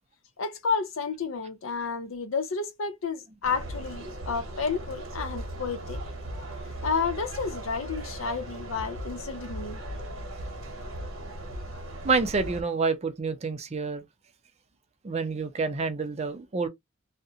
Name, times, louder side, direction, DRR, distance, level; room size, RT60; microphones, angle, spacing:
voice 1, 0.4-6.0 6.8-9.8, left 5 dB, 80° left, 0.6 m, -31 dB
sound 1, 3.4-12.6, right 1 dB, 85° right, 1.0 m, -38 dB
voice 2, 12.0-14.0 15.0-16.7, right 4 dB, 30° right, 0.4 m, -28 dB
2.4 x 2.1 x 2.7 m
head